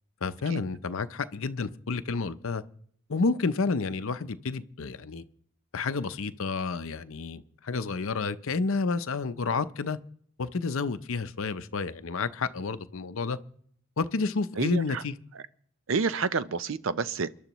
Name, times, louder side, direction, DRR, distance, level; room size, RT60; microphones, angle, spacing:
voice 1, 0.2-2.6 3.1-5.2 5.7-10.0 10.4-13.4 14.0-15.1, left 4 dB, 65° left, 0.6 m, -30 dB
voice 2, 14.6-15.0 15.9-17.3, right 4 dB, 60° right, 0.5 m, -29 dB
29.0 x 11.5 x 3.0 m
head